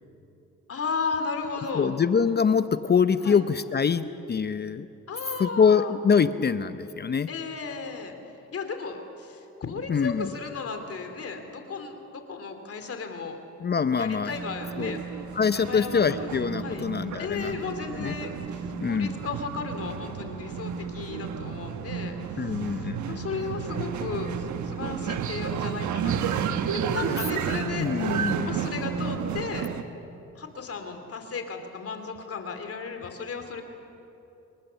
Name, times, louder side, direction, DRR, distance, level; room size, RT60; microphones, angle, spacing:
voice 1, 0.7-1.9 3.2-3.4 5.1-5.9 7.3-8.1 8.5-13.4 13.9-15.0 15.5-16.3 16.6-16.9 17.2-29.7 30.3-33.6, left 5 dB, 50° left, 6 dB, 3.1 m, -35 dB
voice 2, 1.7-4.9 5.4-7.3 9.9-10.3 13.6-14.3 14.8-15.0 15.3-17.6 18.0-18.1 18.8-19.1 22.4-23.2 27.0-27.2 27.8-28.5, left 6 dB, 35° left, 12 dB, 0.7 m, -24 dB
sound 1, 14.3-29.8, right 7 dB, 75° right, 1.3 m, -32 dB
26.0 x 23.5 x 7.0 m, 2.9 s
cardioid pair, 90°, 30 cm